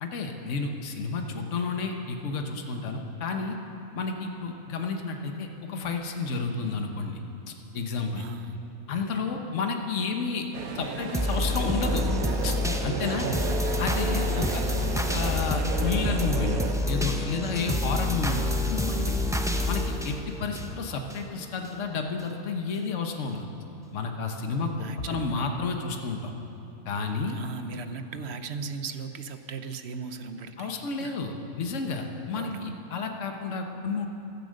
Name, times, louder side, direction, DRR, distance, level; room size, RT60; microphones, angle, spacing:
voice 1, 0.0-3.6 3.9-7.2 7.7-8.3 8.9-10.5 10.7-12.1 12.4-12.5 12.8-13.3 13.8-14.6 14.9-16.6 16.9-19.2 19.7-23.4 23.9-26.3 26.8-27.4 30.6-34.1, left 4 dB, 60° left, 4 dB, 1.4 m, -31 dB
voice 2, 8.2-8.6 13.1-13.6 14.3-14.8 24.8-25.4 27.3-30.7 31.0-31.2 32.3-32.8, right 5 dB, 55° right, 8 dB, 1.0 m, -37 dB
sound 1, 10.5-16.7, right 6 dB, 85° right, 1.3 m, -34 dB
sound 2, 11.1-21.2 21.6-21.7, left 1 dB, 5° right, 0.6 m, -28 dB
15.5 x 13.0 x 6.5 m, 2.8 s
omnidirectional pair, 1.5 m